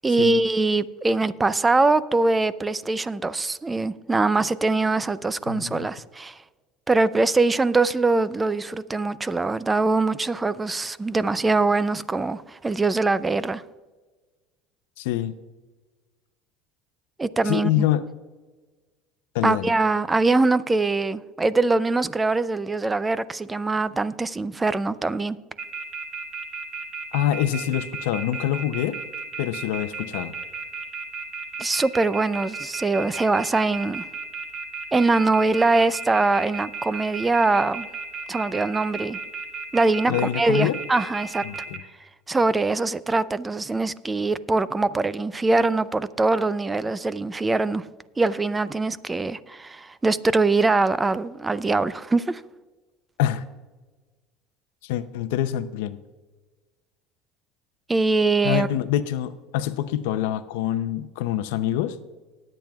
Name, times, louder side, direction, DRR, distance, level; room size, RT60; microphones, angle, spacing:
voice 1, 0.0-6.4 6.9-13.6 17.2-17.8 19.4-25.4 31.6-34.0 34.9-37.9 38.3-39.2 39.7-41.4 42.3-47.8 48.2-52.4 57.9-58.7, right 3 dB, 15° right, 0.4 m, -23 dB
voice 2, 5.5-5.9 15.0-15.4 17.4-18.0 19.3-19.7 27.1-29.0 29.4-30.3 40.1-40.8 41.4-41.8 53.2-53.4 54.8-56.0 58.4-62.0, left 12 dB, 85° left, 0.6 m, -25 dB
sound 1, 25.6-41.8, right 5 dB, 40° right, 1.3 m, -33 dB
19.5 x 8.9 x 2.4 m
supercardioid pair, 120°, 0 cm